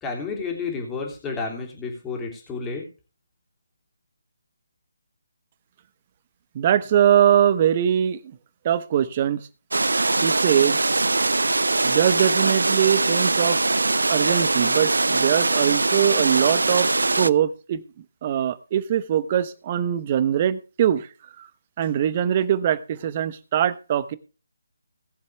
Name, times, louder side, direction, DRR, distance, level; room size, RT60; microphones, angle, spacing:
voice 1, 0.0-2.8, left 4 dB, 10° left, 0 dB, 3.2 m, -31 dB
voice 2, 6.5-8.2 8.6-9.5 10.2-10.8 11.8-13.6 14.1-16.9 17.2-17.8 18.2-21.1 21.4-21.5 21.8-24.2, right 10 dB, 30° right, 15 dB, 0.9 m, -22 dB
sound 1, 9.7-17.3, right 3 dB, 70° right, 0.5 m, -22 dB
19.0 x 7.5 x 3.5 m, 0.33 s
figure-of-eight pair, 150°, 0 cm